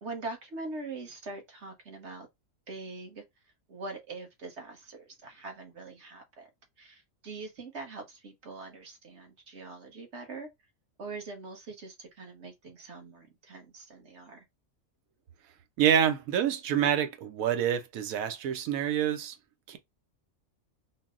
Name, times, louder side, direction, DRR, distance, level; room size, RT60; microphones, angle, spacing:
voice 1, 0.0-2.3 2.7-3.2 3.7-6.5 6.8-10.5 11.0-14.4, right 3 dB, 55° right, 1.3 m, -43 dB
voice 2, 15.8-19.3 19.7-19.8, right 9 dB, 90° right, 1.1 m, -27 dB
3.9 x 2.1 x 3.7 m
omnidirectional pair, 1.4 m